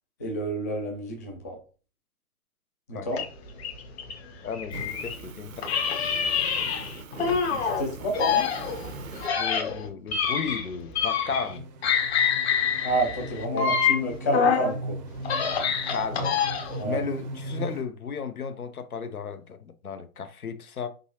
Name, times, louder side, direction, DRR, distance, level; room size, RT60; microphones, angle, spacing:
voice 1, 0.2-1.6 2.9-3.2 7.4-8.5 12.8-15.0 16.8-17.0, right 1 dB, 15° left, 0.4 m, -29 dB
sound 1, 3.1-5.2 5.6-7.8 8.1-11.6 11.8-14.7 15.1-16.8, left 6 dB, 45° left, 1.1 m, -26 dB
voice 2, 4.4-5.5 9.4-11.7 13.5-13.8 15.9-16.4 16.8-20.9, left 5 dB, 75° left, 0.8 m, -34 dB
Fire, 4.7-9.3, right 3 dB, 65° right, 0.8 m, -41 dB
sound 2, 11.3-17.8, right 2 dB, 30° right, 0.6 m, -38 dB
4.8 x 3.9 x 2.8 m
figure-of-eight pair, 115°, 45 cm